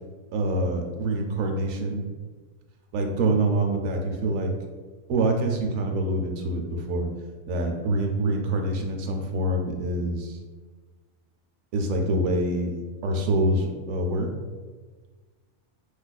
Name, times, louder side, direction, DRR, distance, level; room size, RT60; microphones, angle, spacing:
voice 1, 0.3-2.1 2.9-4.5 5.1-7.1 7.5-10.4 11.7-12.7 13.0-14.3, right 1 dB, 80° right, 2 dB, 1.0 m, -25 dB
5.1 x 2.4 x 2.2 m, 1.4 s
omnidirectional pair, 1.4 m